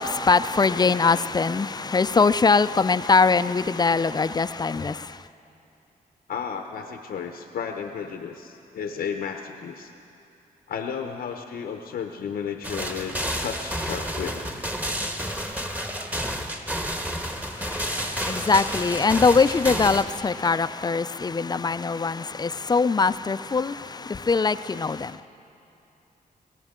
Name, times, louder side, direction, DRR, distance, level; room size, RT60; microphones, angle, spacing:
voice 1, 0.0-5.3 17.4-25.2, left 4 dB, 25° left, 0.4 m, -22 dB
voice 2, 6.3-9.9 10.7-14.5, left 7 dB, 80° left, 0.8 m, -33 dB
sound 1, 12.6-20.0, equal, 10° right, 1.3 m, -30 dB
23.0 x 17.0 x 3.7 m
cardioid pair, 75°, 16 cm